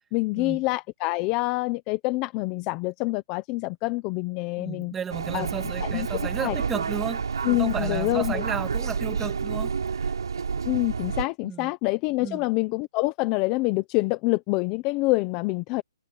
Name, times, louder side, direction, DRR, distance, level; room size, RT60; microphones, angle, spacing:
voice 1, 0.1-4.9 5.3-5.5 5.8-6.1 6.4-6.6 7.4-8.4 10.6-15.8, left 22 dB, 20° left, 0.7 m, -26 dB
voice 2, 4.6-10.1 11.4-11.7 12.2-12.4, right 7 dB, 10° right, 2.0 m, -33 dB
sound 1, 5.1-11.2, right 5 dB, 80° right, 4.7 m, -29 dB
hypercardioid pair, 170°, 2 cm